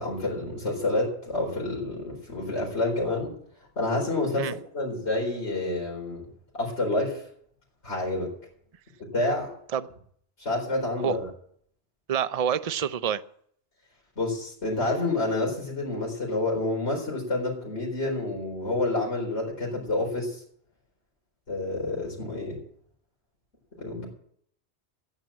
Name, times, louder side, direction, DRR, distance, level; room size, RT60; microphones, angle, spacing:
voice 1, 0.0-3.3 3.8-6.3 6.5-7.3 7.8-8.3 9.0-9.5 10.4-11.2 14.2-20.4 21.5-22.6 23.8-24.1, left 2 dB, 85° left, 4.6 m, -28 dB
voice 2, 12.1-13.2, right 8 dB, 40° right, 0.6 m, -27 dB
14.5 x 9.3 x 7.5 m
omnidirectional pair, 1.1 m